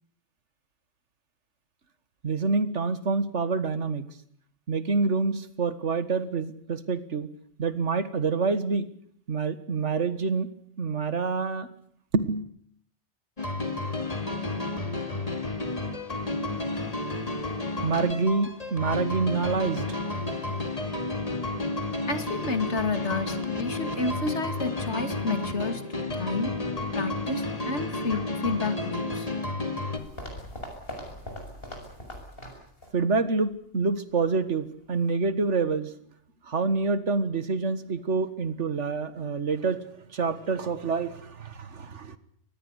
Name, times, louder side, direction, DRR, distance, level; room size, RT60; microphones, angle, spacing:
voice 1, 2.2-4.1 4.7-7.3 7.6-8.9 9.3-10.5 10.8-11.7 12.1-12.4 16.5-16.7 17.8-20.0 32.9-35.9 36.4-39.8 40.1-42.2, right 4 dB, 90° right, 13 dB, 2.0 m, -27 dB
sound 1, 13.4-30.0, left 2 dB, 30° left, 2.6 m, -31 dB
voice 2, 22.1-26.6 26.9-29.3, left 3 dB, 75° left, 9 dB, 2.6 m, -31 dB
sound 2, 29.9-33.0 33.2-33.3 34.0-34.1, equal, 55° left, 6.8 m, -41 dB
25.0 x 19.5 x 8.2 m, 0.63 s
omnidirectional pair, 1.2 m